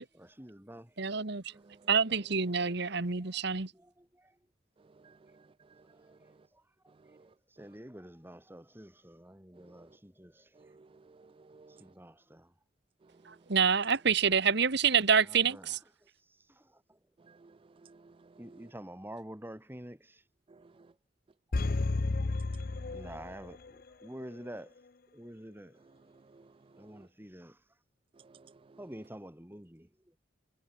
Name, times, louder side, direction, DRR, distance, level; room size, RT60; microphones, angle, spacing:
voice 1, 0.1-1.7 2.1-2.2 3.2-3.4 3.7-4.4 5.0-5.4 5.8-10.8 11.7-12.6 15.2-17.0 18.4-20.3 20.7-20.8 21.5-21.6 22.1-22.2 22.7-25.8 26.8-27.8 28.8-30.2, right 1 dB, 10° right, 3.3 m, -49 dB
voice 2, 1.0-1.4 1.9-3.7 13.3-15.8, right 6 dB, 60° right, 1.5 m, -27 dB
voice 3, 10.6-11.8 17.3-17.5 17.8-18.1 20.5-20.6 26.3-26.4 28.2-28.4, right 4 dB, 30° right, 0.4 m, -57 dB
sound 1, 21.5-23.7 24.0-24.1, left 3 dB, 50° left, 0.6 m, -32 dB
head